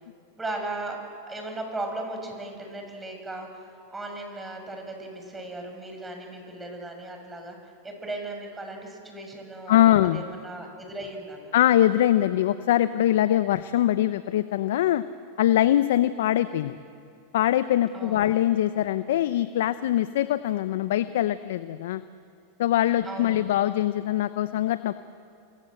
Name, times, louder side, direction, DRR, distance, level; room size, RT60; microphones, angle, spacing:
voice 1, 0.4-1.0 1.3-3.6 3.9-11.5 17.9-18.3 23.0-23.6, right 2 dB, 15° right, 3 dB, 7.2 m, -37 dB
voice 2, 9.7-10.2 11.5-15.0 15.4-16.8 17.3-22.0 22.6-24.9, left 12 dB, 70° left, 13 dB, 0.8 m, -22 dB
29.5 x 24.0 x 7.9 m, 2.5 s
hypercardioid pair, 100°, 0 cm